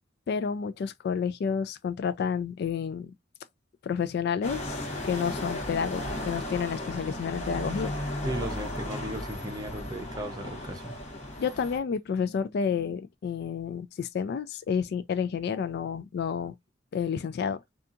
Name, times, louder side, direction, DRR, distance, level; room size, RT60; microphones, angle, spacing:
voice 1, 0.3-3.1 3.8-4.8 5.0-8.0 11.4-16.5 16.9-17.6, left 6 dB, 55° left, 0.3 m, -30 dB
sound 1, 4.4-11.8, left 1 dB, 40° left, 0.9 m, -35 dB
voice 2, 8.2-11.0, right 1 dB, 20° right, 0.6 m, -36 dB
2.7 x 2.3 x 2.4 m
head